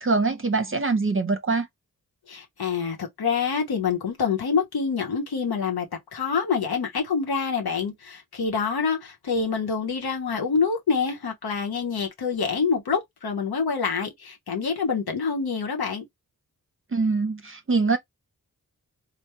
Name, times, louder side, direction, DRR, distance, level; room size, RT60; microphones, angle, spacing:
voice 1, 0.0-1.7 16.9-18.0, right 4 dB, 35° right, 0.7 m, -23 dB
voice 2, 2.3-5.9 6.1-16.0, left 5 dB, 85° left, 0.9 m, -26 dB
3.4 x 2.1 x 2.8 m
cardioid pair, 50°, 37 cm